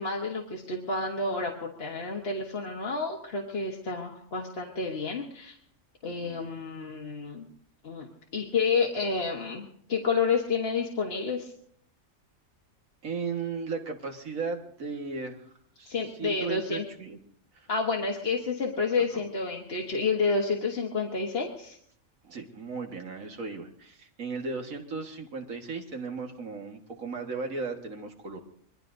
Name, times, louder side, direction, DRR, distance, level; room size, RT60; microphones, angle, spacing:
voice 1, 0.0-5.5 6.0-7.4 7.8-8.1 8.3-9.6 9.9-11.5 15.9-16.8 17.7-21.8, left 4 dB, 50° left, -1 dB, 1.5 m, -29 dB
voice 2, 6.1-6.5 13.0-15.4 15.8-17.2 17.5-17.7 19.1-19.2 22.2-28.4, right 4 dB, 80° right, 3 dB, 2.0 m, -36 dB
26.0 x 21.0 x 2.6 m, 0.65 s
omnidirectional pair, 1.4 m